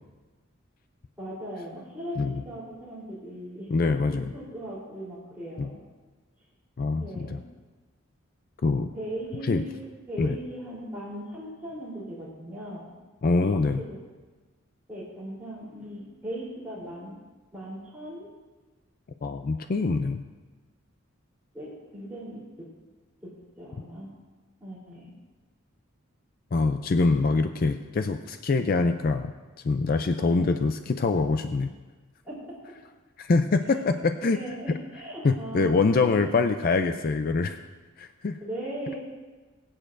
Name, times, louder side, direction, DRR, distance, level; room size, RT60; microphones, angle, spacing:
voice 1, 1.2-3.7 4.1-5.8 7.0-7.4 8.9-12.8 13.4-14.0 14.9-17.2 17.5-18.3 21.5-22.7 23.2-24.1 24.6-25.1 30.2-30.5 32.2-32.8 33.7-33.8 34.3-35.8 36.0-36.2 38.4-39.0, equal, 10° right, -7 dB, 3.4 m, -38 dB
voice 2, 3.7-4.3 5.6-5.7 6.8-7.4 8.6-8.9 9.4-9.6 10.2-10.4 13.2-13.8 19.2-20.2 26.5-29.3 29.6-31.7 33.2-34.0 34.2-34.4 35.2-37.6 38.0-38.4, left 3 dB, 45° left, 8 dB, 0.4 m, -24 dB
21.5 x 8.8 x 2.6 m, 1.3 s
head